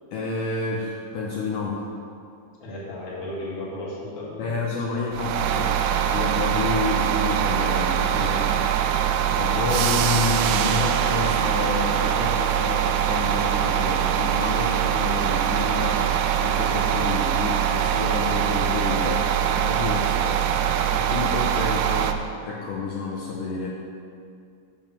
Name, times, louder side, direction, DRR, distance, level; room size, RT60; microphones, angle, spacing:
voice 1, 0.1-1.9 4.4-8.5 9.3-20.5 20.9-23.7, left 4 dB, 75° left, -4 dB, 2.2 m, -29 dB
voice 2, 2.6-4.7, left 1 dB, 40° left, -6 dB, 2.2 m, -34 dB
sound 1, 5.1-22.1, right 9 dB, 85° right, 1.8 m, -23 dB
7.3 x 7.1 x 5.9 m, 2.4 s
omnidirectional pair, 4.2 m